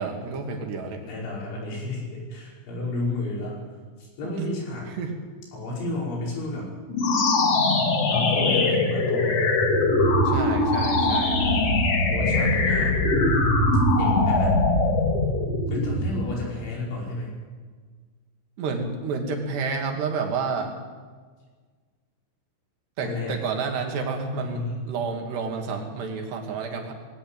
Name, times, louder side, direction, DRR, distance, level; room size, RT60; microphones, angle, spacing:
voice 1, 0.0-1.1 4.2-4.5 5.0-5.1 10.3-11.4 18.6-20.8 23.0-26.9, right 4 dB, 65° right, 3 dB, 4.5 m, -30 dB
voice 2, 1.1-3.6 4.0-4.9 5.5-6.7 8.1-9.4 11.0-11.8 12.1-13.1 14.0-14.6 15.7-17.3 23.0-23.4 24.4-24.8, left 2 dB, 85° left, -3 dB, 8.2 m, -32 dB
sound 1, 6.9-16.4, left 2 dB, 45° left, 2.5 m, -21 dB
20.5 x 17.0 x 9.1 m, 1.5 s
omnidirectional pair, 5.3 m